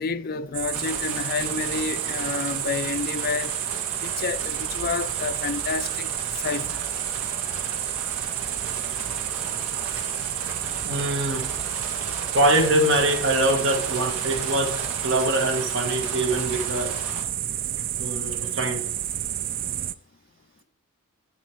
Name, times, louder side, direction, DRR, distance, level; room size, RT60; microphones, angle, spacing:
voice 1, 0.0-3.6 4.0-6.1 6.4-6.8, left 5 dB, 40° left, 0.4 m, -29 dB
sound 1, 0.5-19.9, right 11 dB, 40° right, 0.4 m, -30 dB
sound 2, 0.7-17.2, right 3 dB, 80° right, 2.2 m, -36 dB
voice 2, 10.8-11.5 12.3-17.0 18.0-18.8, right 1 dB, 55° right, 1.6 m, -24 dB
11.5 x 4.4 x 4.7 m
head